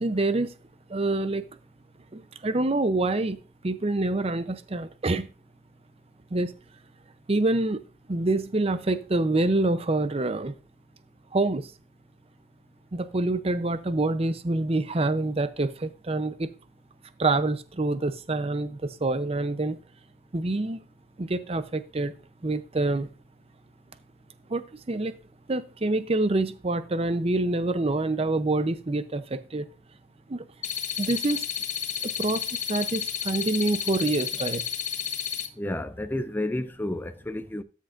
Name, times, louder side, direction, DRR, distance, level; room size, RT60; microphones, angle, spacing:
voice 1, 0.0-0.5 0.9-1.4 2.1-5.3 6.3-6.5 7.3-7.8 8.1-10.5 11.3-11.7 12.9-16.5 17.2-19.8 20.3-20.8 21.2-22.1 22.4-23.1 24.5-25.1 25.5-29.7 30.3-30.4 31.0-31.5 32.0-34.6, right 2 dB, 30° right, 0.6 m, -26 dB
sound 1, 30.6-35.5, left 9 dB, 40° left, 0.8 m, -31 dB
voice 2, 35.6-37.6, left 1 dB, 10° left, 0.4 m, -31 dB
13.0 x 6.4 x 2.5 m
head